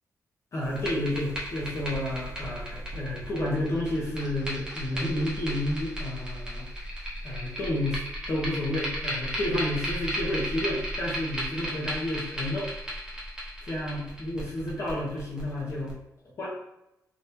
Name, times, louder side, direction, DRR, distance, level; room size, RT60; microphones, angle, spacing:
voice 1, 0.5-6.7 7.2-12.7 13.7-15.9 16.4-16.6, left 1 dB, 45° left, -5 dB, 1.0 m, -31 dB
sound 1, 0.6-15.9, equal, 10° right, 1.0 m, -35 dB
3.6 x 3.0 x 2.7 m, 0.85 s
wide cardioid pair, 130°, 7 cm